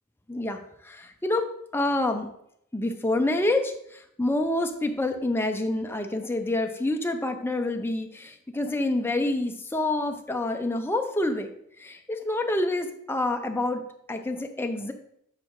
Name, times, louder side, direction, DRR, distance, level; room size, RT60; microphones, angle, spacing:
voice 1, 0.3-2.3 2.7-11.5 11.8-14.9, left 2 dB, 10° left, 5 dB, 0.5 m, -27 dB
8.5 x 4.9 x 3.1 m, 0.73 s
head